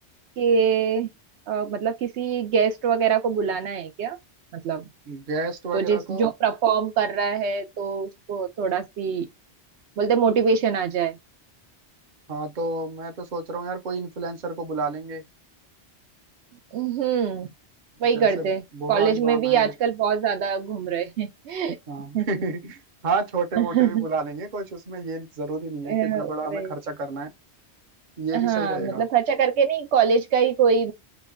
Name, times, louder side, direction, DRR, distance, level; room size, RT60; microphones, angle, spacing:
voice 1, 0.4-1.1 1.5-4.2 4.5-4.8 5.7-9.3 10.0-11.2 16.7-17.5 18.0-18.6 18.9-21.8 22.1-22.4 23.6-24.1 25.8-26.7 28.3-30.9, right 7 dB, 75° right, 0.9 m, -23 dB
voice 2, 5.1-6.3 12.3-15.2 18.1-19.7 21.9-27.3 28.2-29.0, right 3 dB, 50° right, 0.8 m, -30 dB
3.0 x 2.1 x 3.4 m
omnidirectional pair, 1.2 m